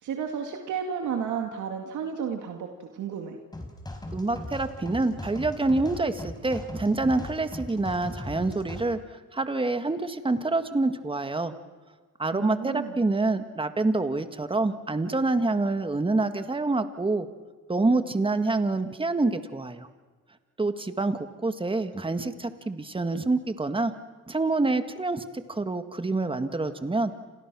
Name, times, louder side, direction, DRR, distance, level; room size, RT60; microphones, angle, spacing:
voice 1, 0.0-3.4 12.3-13.0, right 7 dB, 75° right, 3 dB, 2.2 m, -32 dB
sound 1, 3.5-8.9, left 1 dB, 15° left, 4.5 m, -38 dB
voice 2, 4.1-9.0 9.3-11.5 12.2-17.3 17.7-19.9 20.6-23.9 24.3-25.2 25.5-27.1, right 2 dB, 15° right, 9 dB, 1.8 m, -26 dB
29.5 x 27.0 x 6.2 m, 1.4 s
cardioid pair, 90°, 30 cm